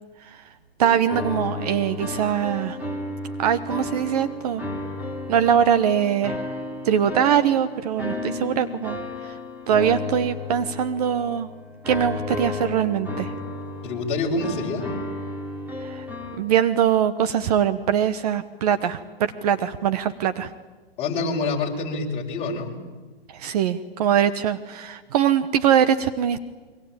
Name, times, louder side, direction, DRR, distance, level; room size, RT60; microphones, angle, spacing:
sound 1, 0.8-16.4, left 2 dB, 5° right, 3.1 m, -33 dB
voice 1, 0.8-2.8 3.4-4.6 5.3-6.4 6.8-9.0 9.2-9.4 9.7-11.5 11.9-13.3 15.8-16.0 16.4-20.5 23.3-26.4, right 9 dB, 40° right, 11 dB, 1.2 m, -22 dB
voice 2, 13.8-14.9 21.0-22.7, left 3 dB, 20° left, -1 dB, 5.1 m, -26 dB
28.0 x 23.5 x 8.9 m, 1.3 s
hypercardioid pair, 140°, 31 cm